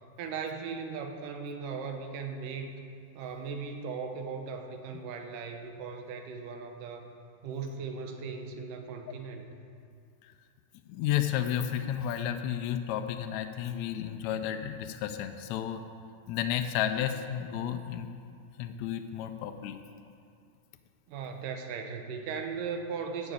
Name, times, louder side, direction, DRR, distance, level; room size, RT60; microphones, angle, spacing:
voice 1, 0.2-2.8 3.1-7.1 7.4-9.5 21.1-23.3, right 5 dB, 85° right, 5 dB, 2.5 m, -38 dB
voice 2, 10.9-15.8 16.3-18.1 18.6-19.8, left 10 dB, 80° left, 7 dB, 1.7 m, -32 dB
12.0 x 6.4 x 8.4 m, 2.4 s
omnidirectional pair, 3.8 m